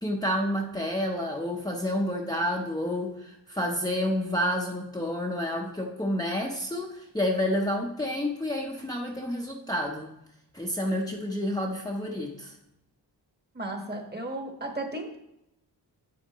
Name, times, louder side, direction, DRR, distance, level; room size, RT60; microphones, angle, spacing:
voice 1, 0.0-10.1 10.5-12.5, left 1 dB, 10° left, -1 dB, 0.8 m, -29 dB
voice 2, 13.5-15.2, right 2 dB, 25° right, 3 dB, 1.5 m, -34 dB
10.0 x 7.6 x 3.0 m, 0.84 s
wide cardioid pair, 80°, 41 cm